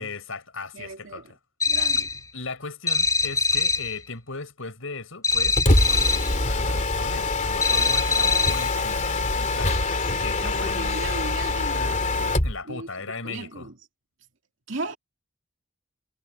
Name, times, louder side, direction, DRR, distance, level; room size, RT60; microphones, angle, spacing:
voice 1, 0.0-1.2 2.3-5.6 5.9-11.1 12.4-13.7, left 4 dB, 75° left, 5.8 m, -37 dB
voice 2, 0.7-1.3 1.7-2.3 8.1-8.6 10.4-12.3 12.6-13.8 14.7-15.0, right 2 dB, 65° right, 2.4 m, -37 dB
sound 1, 1.6-2.2 2.9-4.0 5.2-6.4 7.6-8.7, left 4 dB, 15° left, 3.9 m, -23 dB
Mechanisms, 5.3-12.6, left 2 dB, 35° left, 3.0 m, -24 dB
head